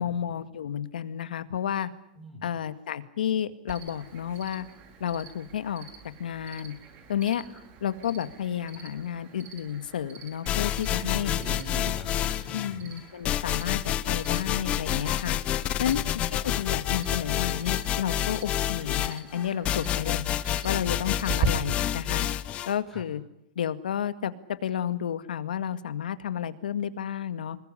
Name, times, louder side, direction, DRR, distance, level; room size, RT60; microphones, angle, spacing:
voice 1, 0.0-1.9 2.4-4.7 5.0-5.9 6.2-6.7 7.1-7.4 7.8-11.3 12.5-15.4 15.8-16.0 16.4-20.2 20.6-22.3 22.7-23.2 23.6-24.3 24.6-27.6, left 9 dB, 90° left, 11 dB, 2.0 m, -31 dB
Cricket, 3.7-21.5, right 6 dB, 35° right, 4.4 m, -42 dB
sound 1, 10.5-12.8 13.2-22.7, left 12 dB, 25° left, 1.0 m, -29 dB
voice 2, 10.9-12.8 15.7-16.1 21.3-21.4 22.9-23.0, equal, 10° right, 2 dB, 5.1 m, -42 dB
26.5 x 21.0 x 9.9 m, 0.78 s
supercardioid pair, 150°, 5 cm